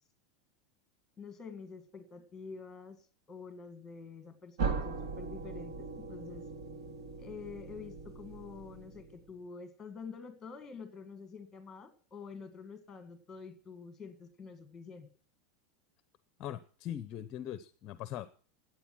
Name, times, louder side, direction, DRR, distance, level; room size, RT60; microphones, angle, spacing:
voice 1, 1.2-6.5 7.2-15.1, left 5 dB, 10° left, 9 dB, 1.9 m, -48 dB
sound 1, 4.6-9.3, right 5 dB, 80° right, 2.3 m, -39 dB
voice 2, 16.4-18.3, left 11 dB, 30° left, 13 dB, 0.7 m, -41 dB
16.0 x 9.2 x 6.1 m, 0.43 s
supercardioid pair, 175°, 3 cm